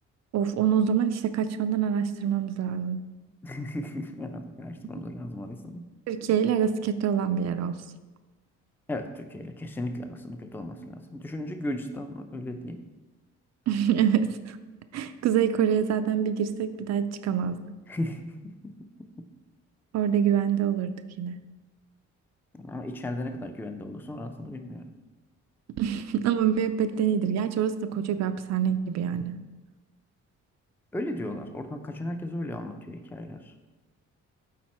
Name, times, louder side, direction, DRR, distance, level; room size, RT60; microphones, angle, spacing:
voice 1, 0.3-3.0 6.1-7.7 13.7-14.6 14.9-17.6 19.9-20.9 21.2-21.4 25.8-29.4, right 8 dB, 60° right, 10 dB, 0.5 m, -25 dB
voice 2, 3.4-5.8 8.9-12.9 17.9-18.3 18.6-18.7 22.5-24.9 30.9-33.5, left 1 dB, 5° left, 7 dB, 0.5 m, -35 dB
7.5 x 4.2 x 4.2 m, 1.2 s
cardioid pair, 90°, 30 cm